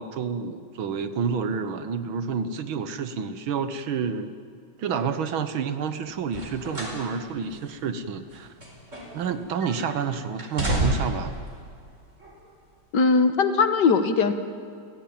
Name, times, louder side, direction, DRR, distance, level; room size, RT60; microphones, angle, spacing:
voice 1, 0.0-4.4 4.8-8.5 9.1-11.4, right 6 dB, 80° right, 10 dB, 2.0 m, -29 dB
sound 1, 6.3-7.0 7.4-7.6 8.3-9.3 9.6-10.0 10.4-11.3 12.2-12.3, right 1 dB, 35° right, 5.2 m, -29 dB
voice 2, 12.9-14.3, left 4 dB, 60° left, 9 dB, 1.9 m, -20 dB
29.5 x 16.5 x 8.8 m, 2.3 s
omnidirectional pair, 2.2 m